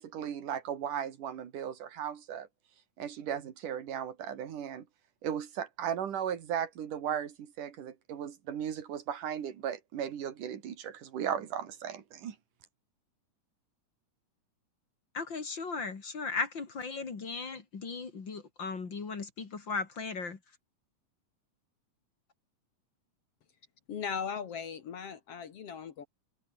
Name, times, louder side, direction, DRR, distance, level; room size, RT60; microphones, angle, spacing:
voice 1, 0.0-2.5 3.0-4.9 5.2-12.4, right 9 dB, 80° right, 3.7 m, -36 dB
voice 2, 15.1-20.4, left 4 dB, 40° left, 3.0 m, -37 dB
voice 3, 23.9-26.1, left 7 dB, 55° left, 2.3 m, -38 dB
omnidirectional pair, 3.6 m